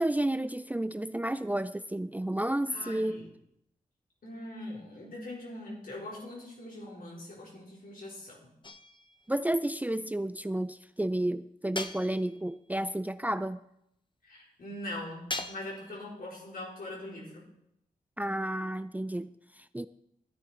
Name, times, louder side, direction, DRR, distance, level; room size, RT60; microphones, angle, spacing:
voice 1, 0.0-3.3 9.3-13.6 18.2-19.9, right 1 dB, 10° right, 13 dB, 0.5 m, -31 dB
voice 2, 2.7-3.3 4.2-8.5 14.2-17.4, left 1 dB, 70° left, -4 dB, 4.5 m, -42 dB
sound 1, 8.6-9.3 11.8-12.5 15.3-16.0, left 2 dB, 30° left, 1.0 m, -39 dB
13.0 x 10.0 x 4.4 m, 0.78 s
cardioid pair, 50°, 15 cm